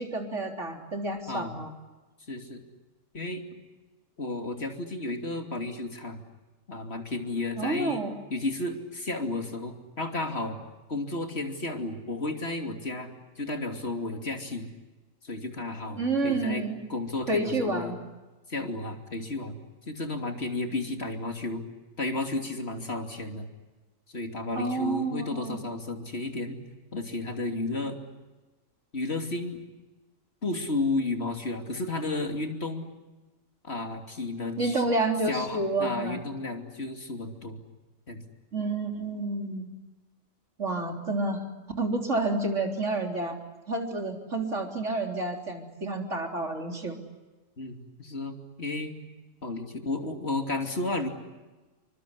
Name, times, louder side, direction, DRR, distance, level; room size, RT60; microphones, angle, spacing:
voice 1, 0.0-1.7 7.6-8.1 16.0-16.7 17.3-18.0 24.6-25.6 34.6-36.2 38.5-39.7 40.6-41.5 41.8-43.4 43.7-47.0, right 2 dB, 70° right, 3 dB, 4.1 m, -29 dB
voice 2, 1.3-1.6 2.3-2.6 3.1-3.4 4.2-6.2 6.7-8.0 8.3-10.6 10.9-13.1 13.4-14.7 15.2-16.6 16.9-17.9 18.5-21.6 22.0-23.5 24.1-26.6 26.9-28.0 28.9-29.6 30.4-32.9 33.6-34.8 35.3-37.6 38.1-38.2 47.6-48.9 49.4-51.1, left 2 dB, 55° left, 4 dB, 3.2 m, -32 dB
28.0 x 25.0 x 8.3 m, 1.2 s
omnidirectional pair, 1.3 m